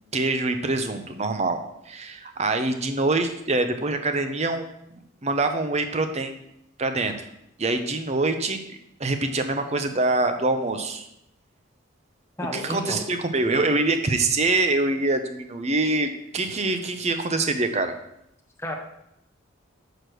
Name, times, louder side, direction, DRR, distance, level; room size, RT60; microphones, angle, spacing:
voice 1, 0.1-1.6 1.9-4.7 5.2-6.3 6.8-7.3 7.6-8.6 9.0-11.1 12.5-17.9, right 2 dB, 30° right, 7 dB, 0.6 m, -24 dB
voice 2, 12.4-13.0 18.6-18.8, left 1 dB, 10° left, 1 dB, 0.9 m, -31 dB
6.2 x 5.0 x 6.2 m, 0.81 s
head